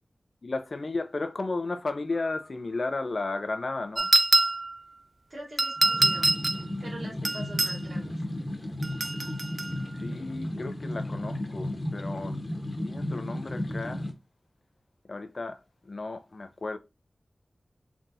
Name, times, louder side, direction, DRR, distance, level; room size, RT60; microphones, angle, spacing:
voice 1, 0.4-4.1 10.0-12.3 12.8-14.1 15.1-15.6 15.9-16.8, left 3 dB, 60° left, 0.5 m, -33 dB
sound 1, 4.0-4.8 5.6-6.6 7.3-7.8 8.8-9.7, right 2 dB, 50° right, 0.4 m, -24 dB
voice 2, 5.3-6.3 6.8-8.1, right 1 dB, 75° right, 2.6 m, -43 dB
sound 2, 5.8-14.1, left 1 dB, 40° left, 1.1 m, -34 dB
4.0 x 3.4 x 2.6 m
wide cardioid pair, 70°, 0 cm